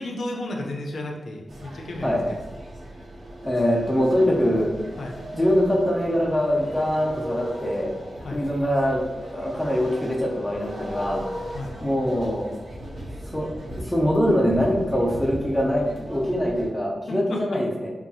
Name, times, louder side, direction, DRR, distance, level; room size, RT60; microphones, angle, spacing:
voice 1, 0.0-2.2 4.1-4.2 5.0-5.2 8.2-8.4 11.5-11.7 17.1-17.4, left 1 dB, 75° left, 0 dB, 0.4 m, -33 dB
sound 1, 1.5-16.7, right 1 dB, 90° right, 0.7 m, -37 dB
voice 2, 3.4-4.7 5.3-7.9 8.3-11.3 11.8-12.5 13.3-13.5 13.8-17.9, equal, 5° left, -3 dB, 0.4 m, -23 dB
2.7 x 2.3 x 2.6 m, 1.1 s
wide cardioid pair, 160°, 0 cm